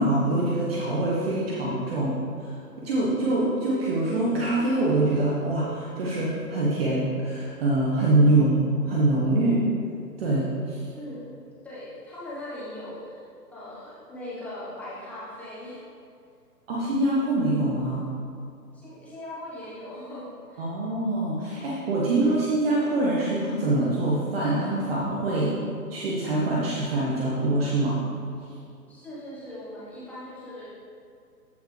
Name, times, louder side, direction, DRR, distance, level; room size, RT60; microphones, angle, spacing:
voice 1, 0.0-2.6 2.8-9.6 10.2-10.9 16.7-18.1 20.6-25.5 25.9-28.0, right 2 dB, 35° right, -6 dB, 1.3 m, -24 dB
voice 2, 10.9-11.3 11.6-13.2 13.5-15.8 18.7-20.6 28.9-30.7, left 1 dB, 5° left, -10 dB, 1.2 m, -39 dB
14.0 x 4.7 x 3.3 m, 2.5 s
hypercardioid pair, 145°, 50 cm